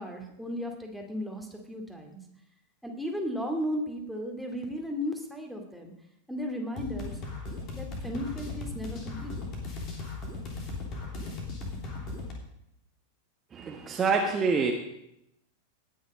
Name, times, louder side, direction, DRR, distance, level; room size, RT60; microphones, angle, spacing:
voice 1, 0.0-2.2 2.8-5.9 6.3-7.2 7.7-9.4, equal, ahead, 2 dB, 2.2 m, -35 dB
sound 1, 6.8-12.3, left 3 dB, 35° left, 3.2 m, -37 dB
voice 2, 13.5-14.7, right 4 dB, 20° right, 1 dB, 1.4 m, -26 dB
19.0 x 6.5 x 5.3 m, 0.81 s
figure-of-eight pair, 90°, 0 cm